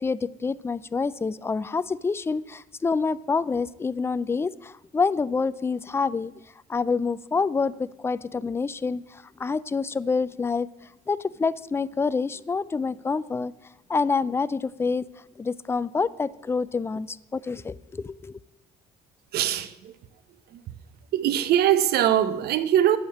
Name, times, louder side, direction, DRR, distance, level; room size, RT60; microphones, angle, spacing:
voice 1, 0.0-6.3 6.7-10.7 11.1-13.5 13.9-15.0 15.4-18.4, left 4 dB, 15° left, 0.3 m, -27 dB
voice 2, 19.3-20.0 20.5-20.6 21.1-23.0, right 11 dB, 70° right, 0.8 m, -22 dB
9.3 x 6.6 x 7.3 m
cardioid pair, 110°, 17 cm